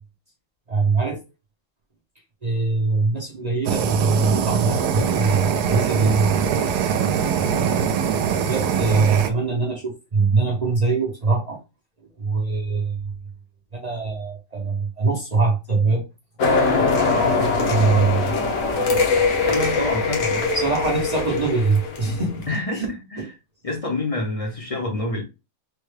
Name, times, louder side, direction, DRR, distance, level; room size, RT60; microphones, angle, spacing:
voice 1, 0.7-1.2 2.4-6.3 8.5-11.6 12.2-13.1 13.7-16.0 17.7-18.3 20.5-22.3 22.7-22.9 23.2-23.3, right 4 dB, 45° right, 0.5 m, -22 dB
Fire, 3.7-9.3, right 7 dB, 80° right, 1.1 m, -22 dB
sound 1, 16.4-22.5, left 3 dB, 65° left, 1.2 m, -22 dB
voice 2, 19.5-20.5 22.5-23.3 23.6-25.2, left 2 dB, 35° left, 0.6 m, -27 dB
3.7 x 2.2 x 3.2 m
omnidirectional pair, 1.7 m